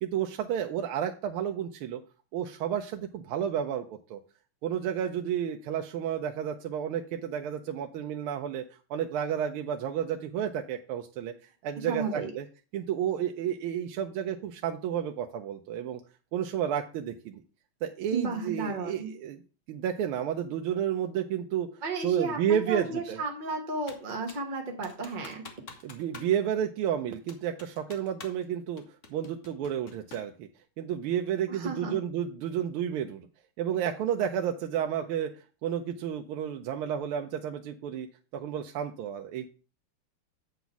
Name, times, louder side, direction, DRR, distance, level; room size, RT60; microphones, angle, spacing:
voice 1, 0.0-2.0 2.3-4.2 4.6-8.6 8.9-11.3 11.6-12.4 12.7-16.0 16.3-17.4 17.8-19.4 19.7-21.7 22.0-23.2 25.8-28.8 29.1-30.5 30.8-33.3 33.6-35.3 35.6-38.1 38.3-39.5, right 9 dB, 80° right, 5 dB, 1.5 m, -31 dB
voice 2, 11.8-12.3 18.1-19.1 21.8-25.4 31.5-31.9, right 3 dB, 30° right, 1 dB, 1.0 m, -33 dB
Computer keyboard, 23.9-24.5 24.8-26.3 26.6-26.7 27.3-28.5 28.8-30.3, left 4 dB, 45° left, 1.2 m, -48 dB
8.2 x 4.0 x 5.8 m, 0.36 s
omnidirectional pair, 2.4 m